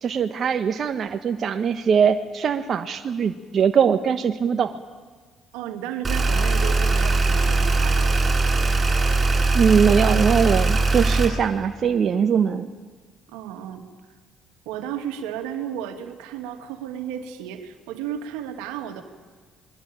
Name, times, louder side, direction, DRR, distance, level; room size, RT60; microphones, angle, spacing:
voice 1, 0.0-4.8 9.5-12.7, right 7 dB, 50° right, 8 dB, 1.2 m, -21 dB
voice 2, 5.5-8.4 13.3-13.9 14.7-19.0, right 9 dB, 85° right, 6 dB, 2.3 m, -33 dB
sound 1, 6.0-11.3, right 3 dB, 30° right, 7.4 m, -20 dB
27.5 x 21.5 x 9.0 m, 1.4 s
supercardioid pair, 65°, 0 cm